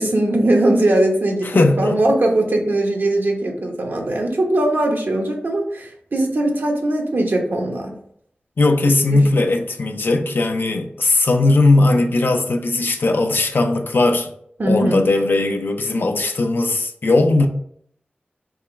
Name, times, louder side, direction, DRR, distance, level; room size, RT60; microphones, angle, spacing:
voice 1, 0.0-7.9 9.1-9.2 14.6-15.1, right 1 dB, 65° right, 1 dB, 1.0 m, -20 dB
voice 2, 1.4-2.0 8.6-14.3 14.7-17.5, left 2 dB, 65° left, 5 dB, 0.6 m, -18 dB
3.6 x 3.0 x 4.4 m, 0.67 s
wide cardioid pair, 60°, 4 cm